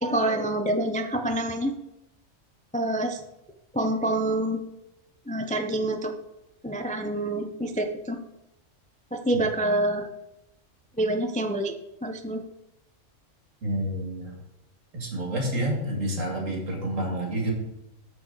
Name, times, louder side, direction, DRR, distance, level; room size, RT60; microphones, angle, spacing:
voice 1, 0.0-1.7 2.7-3.2 3.7-4.6 5.3-6.1 6.6-8.2 9.1-10.1 11.0-11.7 12.0-12.4, right 1 dB, 10° left, 5 dB, 0.3 m, -26 dB
voice 2, 13.6-14.4 14.9-17.5, right 1 dB, 80° right, 1 dB, 2.4 m, -29 dB
13.5 x 4.7 x 3.9 m, 0.90 s
omnidirectional pair, 1.3 m